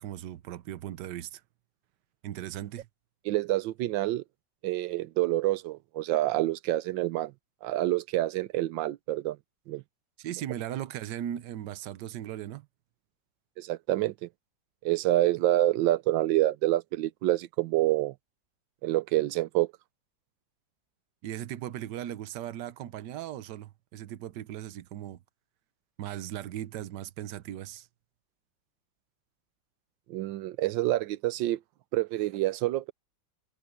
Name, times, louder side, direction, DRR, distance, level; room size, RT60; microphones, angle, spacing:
voice 1, 0.0-1.4 2.2-2.9 10.2-12.7 21.2-25.2 26.0-27.9, right 11 dB, 70° right, 1.4 m, -38 dB
voice 2, 3.3-4.2 4.6-7.3 7.6-9.4 9.7-9.8 13.6-14.3 14.8-18.1 18.8-19.7 30.1-31.6 31.9-32.9, right 15 dB, 90° right, 1.4 m, -27 dB
omnidirectional pair, 2.0 m